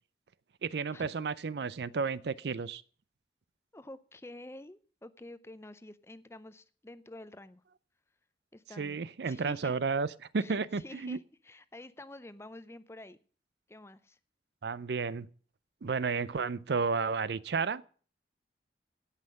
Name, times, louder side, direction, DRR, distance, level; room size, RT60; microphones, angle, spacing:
voice 1, 0.6-2.8 8.8-10.1 10.3-11.2 14.6-15.3 15.8-17.8, right 5 dB, 75° right, 0.5 m, -32 dB
voice 2, 3.7-7.6 8.5-9.7 10.4-13.2 13.7-14.2, left 1 dB, 15° left, 0.5 m, -49 dB
16.5 x 5.7 x 6.4 m
head